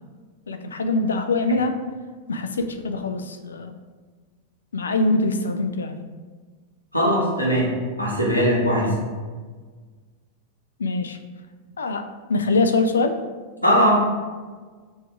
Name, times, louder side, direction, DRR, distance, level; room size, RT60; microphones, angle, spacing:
voice 1, 0.5-1.8 2.3-3.7 4.7-6.0 8.8-9.0 10.8-11.2 11.8-13.2, left 3 dB, 70° left, 8 dB, 0.3 m, -23 dB
voice 2, 6.9-7.7 8.0-8.9 13.6-14.0, equal, 85° left, -3 dB, 1.0 m, -19 dB
3.4 x 2.6 x 4.6 m, 1.4 s
figure-of-eight pair, 90°, 0 cm